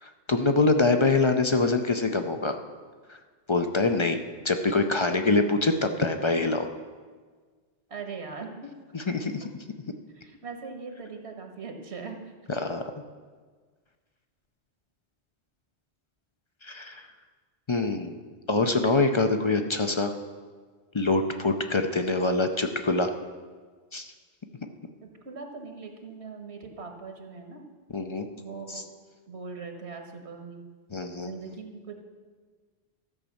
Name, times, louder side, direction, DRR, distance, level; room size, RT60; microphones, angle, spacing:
voice 1, 0.0-2.6 3.1-3.2 3.5-4.2 4.4-6.7 8.9-9.4 12.5-12.9 16.6-17.1 17.7-18.2 18.5-20.1 20.9-23.1 23.9-24.1 27.9-28.3 28.7-28.8 30.9-31.3, left 3 dB, 40° left, 6 dB, 0.4 m, -25 dB
voice 2, 7.9-8.7 10.1-12.3 25.0-27.7 28.4-28.8 29.3-30.6 31.2-32.0, right 4 dB, 70° right, 4 dB, 1.5 m, -40 dB
13.5 x 5.2 x 7.0 m, 1.5 s
omnidirectional pair, 1.2 m